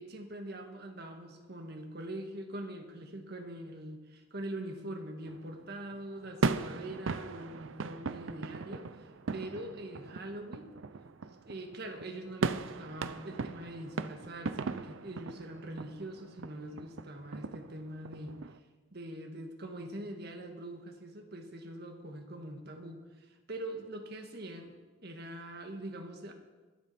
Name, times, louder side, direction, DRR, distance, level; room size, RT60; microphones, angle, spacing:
voice 1, 0.0-10.7 11.4-18.4 18.9-24.7 25.0-26.3, right 1 dB, 55° right, 4 dB, 1.7 m, -43 dB
sound 1, 5.3-18.6, right 4 dB, 85° right, 0.6 m, -38 dB
22.5 x 8.3 x 4.3 m, 1.2 s
head